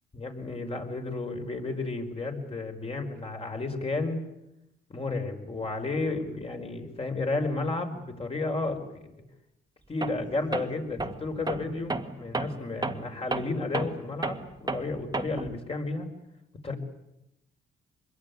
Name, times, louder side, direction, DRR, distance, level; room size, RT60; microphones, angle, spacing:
voice 1, 0.1-4.2 4.9-9.2 9.9-16.1 16.6-16.7, left 3 dB, 30° left, 4 dB, 5.2 m, -32 dB
Tools, 10.0-10.3 10.5-15.6, right 3 dB, 20° right, 1.8 m, -33 dB
25.0 x 22.0 x 9.6 m, 0.88 s
cardioid pair, 90°, 20 cm